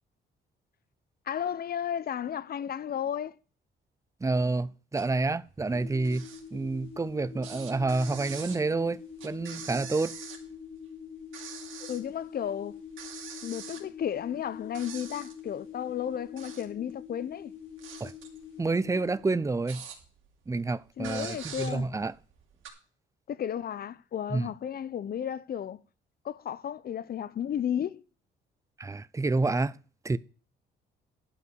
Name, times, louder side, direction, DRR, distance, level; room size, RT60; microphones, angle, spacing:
voice 1, 1.3-3.4 11.9-12.8 13.4-17.5 21.0-21.9 23.3-25.8 26.2-28.0, left 9 dB, 50° left, 0.7 m, -33 dB
voice 2, 4.2-10.1 18.0-18.1 18.6-19.8 20.5-22.2 24.3-24.5 28.8-29.8 30.0-30.2, right 3 dB, 15° right, 0.6 m, -29 dB
sound 1, 4.9-5.3 5.6-7.1 7.4-10.8 11.1-12.1 12.4-12.5 12.9-14.4 14.7-15.5 16.1-16.9 17.3-20.3 20.6-20.7 21.0-22.7, right 7 dB, 80° right, 2.9 m, -44 dB
sound 2, 5.6-19.2, left 7 dB, 75° left, 4.0 m, -45 dB
11.5 x 5.4 x 6.9 m
cardioid pair, 90°, 20 cm